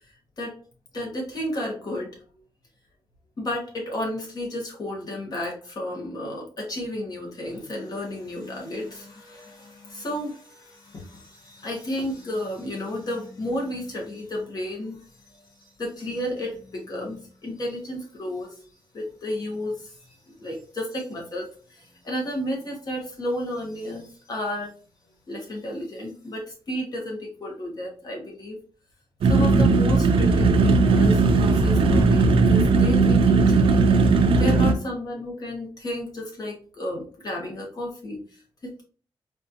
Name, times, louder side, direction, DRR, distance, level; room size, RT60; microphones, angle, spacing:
voice 1, 0.9-2.1 3.4-18.7 18.9-24.7 25.3-28.6 29.2-38.8, left 1 dB, 45° left, -1 dB, 1.5 m, -32 dB
sound 1, 29.2-34.7, right 3 dB, 90° right, 0.5 m, -18 dB
4.4 x 2.7 x 2.8 m, 0.40 s
wide cardioid pair, 150°, 9 cm